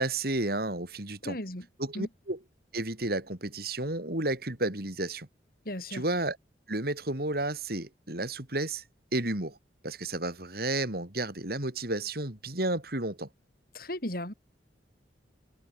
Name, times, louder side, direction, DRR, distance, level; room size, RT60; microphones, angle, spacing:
voice 1, 0.0-1.4 1.8-2.4 2.7-5.3 5.9-6.4 6.7-8.8 9.1-9.6 9.8-13.3, right 2 dB, 55° right, 3.8 m, -32 dB
voice 2, 1.2-1.7 1.9-2.1 5.7-6.0 13.7-14.3, left 1 dB, 55° left, 7.4 m, -36 dB
head